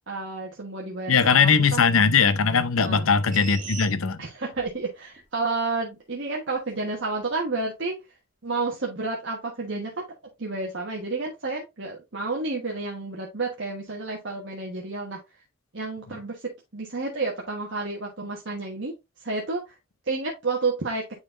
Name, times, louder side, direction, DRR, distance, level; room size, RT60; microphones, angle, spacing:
voice 1, 0.1-1.8 2.8-3.0 4.2-7.9 8.4-10.0 10.4-15.2 15.7-16.4 16.7-18.9 19.2-19.6 20.1-21.0, right 3 dB, 60° right, 1.3 m, -30 dB
voice 2, 1.1-4.2 16.1-16.2, left 5 dB, 85° left, 0.7 m, -20 dB
sound 1, 3.3-4.8 5.2-5.3, right 5 dB, 40° right, 1.4 m, -39 dB
9.5 x 4.1 x 2.6 m
head